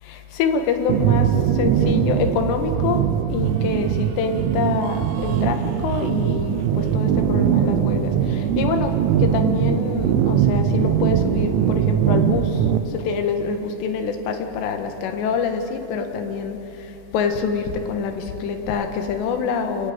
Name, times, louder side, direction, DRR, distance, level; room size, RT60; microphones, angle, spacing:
voice 1, 0.1-3.0 3.3-12.6 12.9-16.6 17.1-19.9, left 5 dB, 70° left, 5 dB, 3.2 m, -25 dB
sound 1, 0.9-12.8, right 9 dB, 80° right, 3.0 m, -21 dB
29.0 x 11.0 x 9.3 m, 2.9 s
omnidirectional pair, 5.9 m